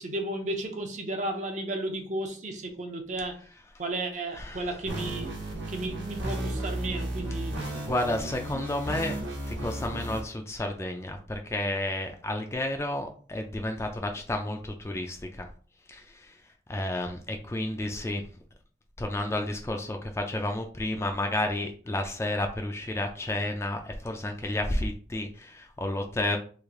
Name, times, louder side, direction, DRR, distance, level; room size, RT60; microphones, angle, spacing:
voice 1, 0.0-3.4 3.8-5.3 5.7-7.6, right 2 dB, 40° right, 5 dB, 0.5 m, -33 dB
voice 2, 4.3-4.7 7.7-9.2 9.5-15.5 15.9-16.4 16.7-18.2 19.0-26.4, left 1 dB, 15° left, 4 dB, 0.3 m, -31 dB
sound 1, 4.9-10.2, right 1 dB, 85° right, 1.2 m, -34 dB
3.2 x 2.5 x 3.6 m, 0.43 s
head